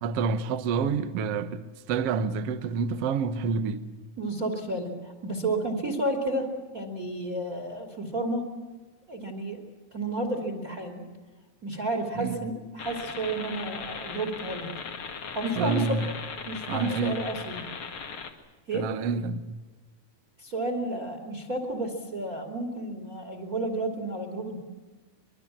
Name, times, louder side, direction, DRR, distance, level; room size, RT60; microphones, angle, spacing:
voice 1, 0.0-3.9 12.1-12.4 15.6-16.1 16.7-17.2 18.7-19.6, right 5 dB, 70° right, 1.5 m, -28 dB
voice 2, 4.2-8.5 9.1-9.6 9.9-11.0 11.6-14.7 15.3-16.0 16.4-17.7 18.7-18.9 20.4-24.6, right 2 dB, 25° right, 2.6 m, -31 dB
sound 1, 12.8-18.3, left 5 dB, 45° left, 2.1 m, -38 dB
24.5 x 23.0 x 7.5 m
omnidirectional pair, 4.6 m